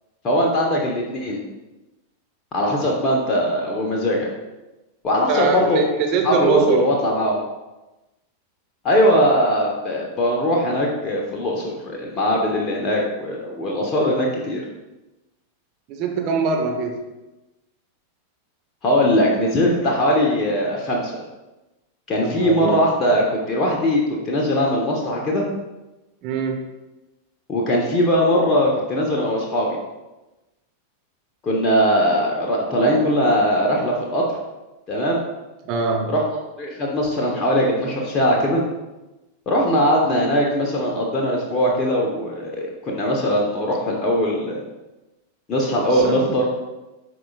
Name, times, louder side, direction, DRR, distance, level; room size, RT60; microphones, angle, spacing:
voice 1, 0.2-1.4 2.5-4.3 5.0-5.8 6.2-7.4 8.8-14.6 18.8-21.2 22.1-25.4 27.5-29.8 31.4-34.2 34.9-35.2 36.1-36.2 36.6-38.6 39.5-44.6 45.5-46.4, equal, 25° left, -2 dB, 1.2 m, -20 dB
voice 2, 5.3-6.9 15.9-17.0 22.2-22.8 26.2-26.6 35.6-36.1 45.9-46.3, right 5 dB, 40° right, 2 dB, 1.0 m, -23 dB
9.9 x 5.1 x 2.5 m, 1.0 s
figure-of-eight pair, 90°, 0 cm